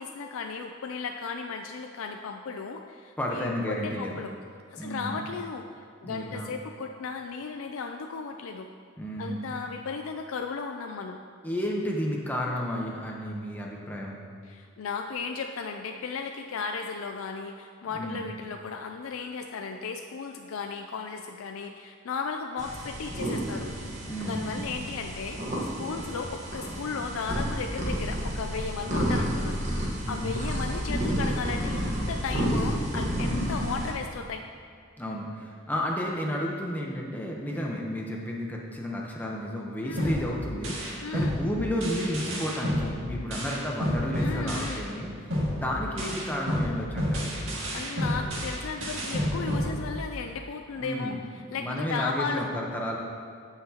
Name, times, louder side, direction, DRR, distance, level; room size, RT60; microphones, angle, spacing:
voice 1, 0.0-4.3 4.7-8.7 9.2-11.2 14.4-23.7 24.2-25.4 25.8-34.4 39.8-40.2 41.0-41.4 44.2-44.9 47.7-51.2 51.5-52.5, left 5 dB, 85° left, 4 dB, 0.4 m, -35 dB
voice 2, 3.2-4.1 4.8-5.2 6.0-6.6 9.0-9.5 11.4-14.2 17.9-18.2 24.0-24.4 30.0-30.4 33.1-33.6 35.0-45.1 45.5-47.4 50.8-51.2 51.6-53.0, equal, 10° left, -2 dB, 0.9 m, -32 dB
sound 1, 22.6-33.9, equal, 35° right, 1.3 m, -31 dB
sound 2, 40.0-45.0 45.3-50.3, equal, 75° right, 2.0 m, -31 dB
15.5 x 5.8 x 2.9 m, 2.2 s
head